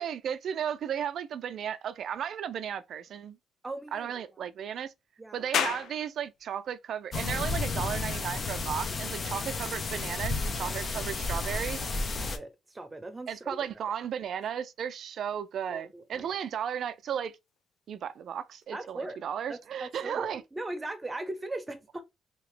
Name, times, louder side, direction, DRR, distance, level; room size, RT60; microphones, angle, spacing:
voice 1, 0.0-3.4 3.9-4.9 5.3-11.9 13.3-17.4 17.9-20.4, right 8 dB, 65° right, 0.4 m, -35 dB
voice 2, 3.6-4.3 5.2-5.5 10.6-10.7 12.1-13.5 15.7-16.3 18.7-19.2 19.5-22.0, right 2 dB, 20° right, 0.8 m, -39 dB
sound 1, 5.5-18.6, left 8 dB, 75° left, 0.5 m, -42 dB
sound 2, 7.1-12.4, left 3 dB, 40° left, 0.8 m, -32 dB
2.9 x 2.8 x 3.2 m
cardioid pair, 90°, 0 cm